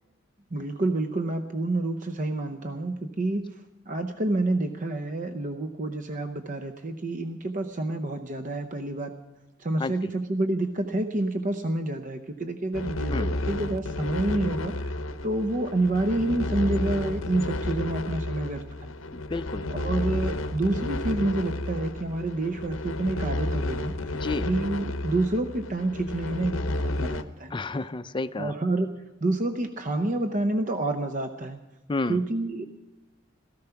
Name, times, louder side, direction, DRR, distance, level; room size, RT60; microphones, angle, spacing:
voice 1, 0.5-9.1 9.6-18.9 19.7-24.1 24.5-27.5 28.4-31.6 32.1-32.7, right 2 dB, 40° right, 8 dB, 0.7 m, -28 dB
voice 2, 9.8-10.1 13.1-13.3 19.1-19.7 24.1-24.5 27.5-28.5 31.9-32.2, left 3 dB, 25° left, 12 dB, 0.5 m, -31 dB
sound 1, 12.7-27.2, left 1 dB, 75° left, 0.8 m, -31 dB
17.0 x 14.0 x 5.8 m, 1.1 s
head